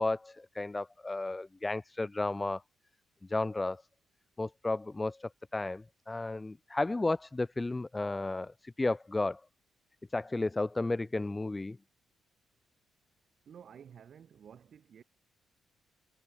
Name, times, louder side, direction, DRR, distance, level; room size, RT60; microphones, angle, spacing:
voice 1, 0.0-2.6 3.3-3.8 4.4-9.4 10.1-11.8, left 2 dB, 20° left, 0.5 m, -33 dB
voice 2, 13.4-15.0, right 8 dB, 50° right, 5.2 m, -52 dB
figure-of-eight pair, 40°, 0 cm